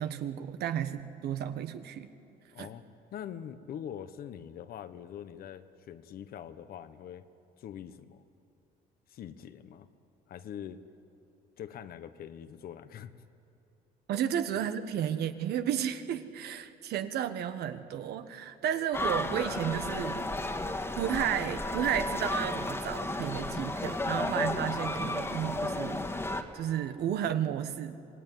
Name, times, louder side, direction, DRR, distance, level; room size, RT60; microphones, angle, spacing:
voice 1, 0.0-2.1 2.6-2.7 14.1-20.2 20.9-26.1 26.5-28.0, right 9 dB, 70° right, 10 dB, 1.4 m, -32 dB
voice 2, 2.5-7.2 7.6-8.2 9.1-9.9 10.3-10.8 11.6-13.1 14.1-14.2, left 9 dB, 60° left, 11 dB, 1.2 m, -43 dB
sound 1, 18.9-26.4, left 2 dB, 15° left, 1.8 m, -33 dB
26.5 x 19.5 x 9.5 m, 2.6 s
cardioid pair, 110°, 17 cm